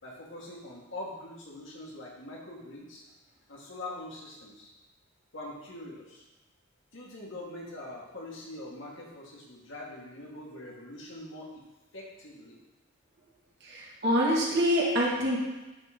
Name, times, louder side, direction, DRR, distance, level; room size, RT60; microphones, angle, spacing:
voice 1, 0.0-3.0 3.5-4.7 5.3-6.2 6.9-11.6 11.9-12.6, left 1 dB, 65° left, -3 dB, 1.9 m, -43 dB
voice 2, 13.6-15.4, equal, 60° right, -5 dB, 2.0 m, -26 dB
11.0 x 4.0 x 3.8 m, 1.1 s
head